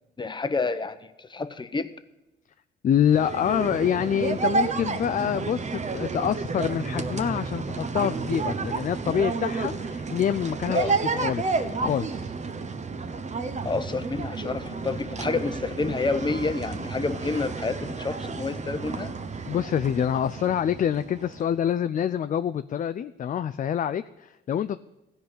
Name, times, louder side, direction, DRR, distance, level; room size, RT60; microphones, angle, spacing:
voice 1, 0.2-1.9 10.7-11.0 13.6-19.1, left 4 dB, 25° left, 11 dB, 0.8 m, -29 dB
voice 2, 2.8-12.3 19.5-24.8, left 9 dB, 40° left, 11 dB, 0.4 m, -26 dB
sound 1, 3.0-21.5, right 4 dB, 35° right, 0.9 m, -31 dB
15.5 x 5.2 x 8.0 m, 0.96 s
cardioid pair, 90°, 20 cm